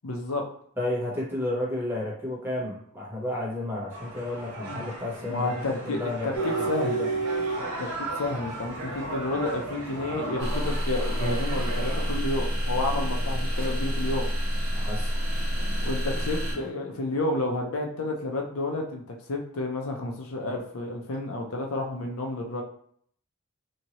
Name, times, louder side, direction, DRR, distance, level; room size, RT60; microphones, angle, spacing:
voice 1, 0.0-0.4 4.7-4.9 5.3-7.0 7.8-14.3 15.8-22.6, left 2 dB, 70° left, 2 dB, 0.6 m, -31 dB
voice 2, 0.8-7.1 14.7-15.3, left 1 dB, 10° right, -5 dB, 0.9 m, -32 dB
sound 1, 3.9-12.1, right 2 dB, 80° right, 0.9 m, -36 dB
sound 2, 6.3-16.7, right 4 dB, 35° left, 0.9 m, -36 dB
sound 3, 10.4-16.5, equal, 55° right, 1.1 m, -28 dB
2.8 x 2.7 x 2.9 m, 0.63 s
head